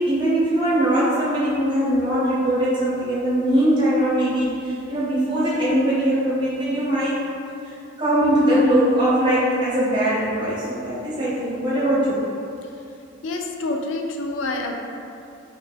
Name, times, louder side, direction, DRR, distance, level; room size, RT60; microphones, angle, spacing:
voice 1, 0.0-7.2 7.6-12.2, right 1 dB, 25° right, -10 dB, 0.9 m, -21 dB
voice 2, 13.2-14.8, left 2 dB, 80° left, 2 dB, 0.3 m, -27 dB
3.1 x 2.7 x 3.4 m, 2.6 s
head